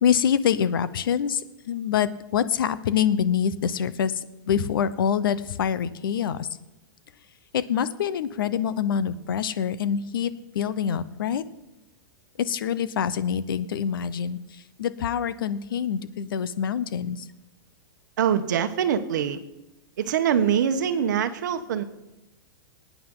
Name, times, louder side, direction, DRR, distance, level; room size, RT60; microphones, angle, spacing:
voice 1, 0.0-6.5 7.5-10.3 10.5-11.4 12.4-17.2, left 8 dB, 85° left, 15 dB, 0.9 m, -25 dB
voice 2, 18.2-19.4 20.0-21.8, right 8 dB, 60° right, 8 dB, 1.2 m, -24 dB
22.5 x 9.4 x 3.9 m, 0.96 s
supercardioid pair, 180°, 11 cm